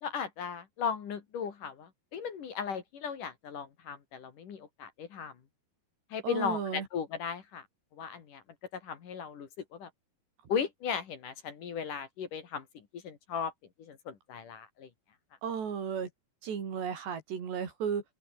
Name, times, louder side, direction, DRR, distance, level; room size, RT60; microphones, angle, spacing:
voice 1, 0.0-5.3 6.1-7.6 8.0-8.4 8.8-9.9 10.5-12.6 13.0-13.5 13.8-14.9, left 7 dB, 55° left, 3.6 m, -36 dB
voice 2, 6.2-6.9 15.4-16.1 16.4-18.0, right 7 dB, 75° right, 6.3 m, -34 dB
open air
omnidirectional pair, 4.9 m